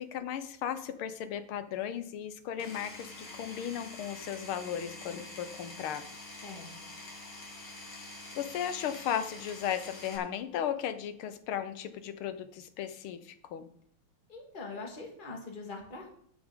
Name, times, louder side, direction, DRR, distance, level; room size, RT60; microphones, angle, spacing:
voice 1, 0.0-6.1 8.3-13.7, left 9 dB, 85° left, 11 dB, 1.8 m, -36 dB
Power tool, 2.6-10.2, left 2 dB, 55° left, 2.9 m, -46 dB
voice 2, 6.4-6.9 14.3-16.1, left 3 dB, 25° left, 1 dB, 1.9 m, -43 dB
13.0 x 8.8 x 3.7 m, 0.65 s
omnidirectional pair, 2.3 m